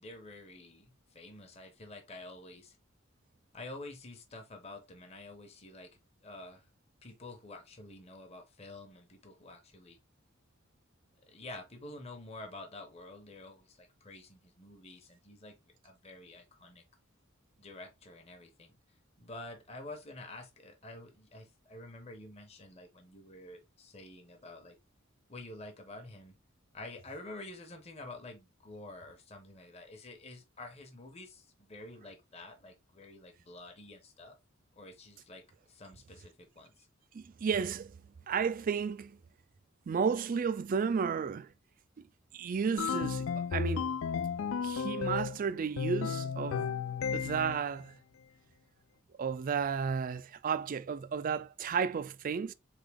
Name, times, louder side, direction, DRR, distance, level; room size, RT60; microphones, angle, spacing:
voice 1, 0.0-2.8 3.5-6.7 7.0-10.0 11.3-16.8 17.6-24.8 25.3-26.3 26.7-34.4 34.8-36.9, left 2 dB, 30° left, 1.0 m, -49 dB
voice 2, 37.1-38.0 38.3-39.2 39.9-41.5 42.0-42.1 42.3-43.9 44.6-46.7 47.1-48.0 49.2-52.5, right 6 dB, 45° right, 0.3 m, -33 dB
sound 1, 42.8-45.4 45.8-47.6, left 6 dB, 70° left, 0.3 m, -33 dB
3.8 x 3.6 x 3.5 m
head